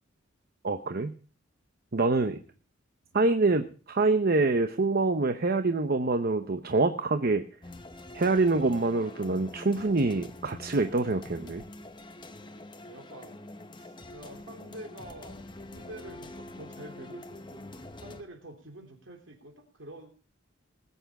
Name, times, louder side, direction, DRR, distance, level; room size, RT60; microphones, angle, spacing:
voice 1, 0.6-1.1 1.9-2.4 3.1-7.4 8.1-11.6, right 3 dB, 50° right, 8 dB, 0.8 m, -25 dB
sound 1, 7.6-18.2, left 2 dB, 25° left, 1.0 m, -45 dB
voice 2, 12.8-13.4 13.7-17.6 18.0-20.1, right 1 dB, 70° right, 4 dB, 3.1 m, -47 dB
19.5 x 8.2 x 4.9 m, 0.40 s
head